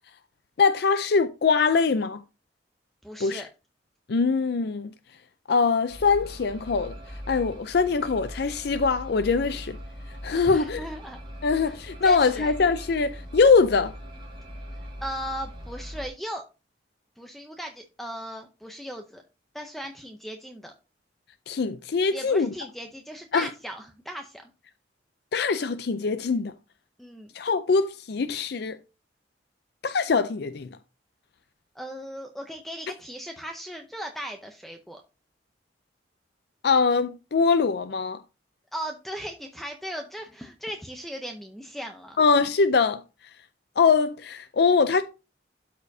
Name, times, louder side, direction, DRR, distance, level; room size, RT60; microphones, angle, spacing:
voice 1, 0.6-2.2 3.2-3.4 4.1-4.9 5.5-7.0 7.3-9.8 10.2-10.8 11.4-13.9 21.5-22.5 23.3-23.5 25.3-26.5 27.4-28.8 29.8-30.7 36.6-38.2 42.2-43.0 43.8-45.0, left 4 dB, 60° left, 0.4 m, -22 dB
voice 2, 3.0-3.5 10.4-11.2 11.6-11.8 12.0-12.5 15.0-16.4 17.2-19.2 19.5-20.7 22.1-24.4 27.0-27.3 31.8-35.0 38.7-42.2, equal, ahead, 0.6 m, -37 dB
sound 1, 5.9-16.1, equal, 25° right, 1.6 m, -40 dB
12.5 x 4.4 x 2.7 m
head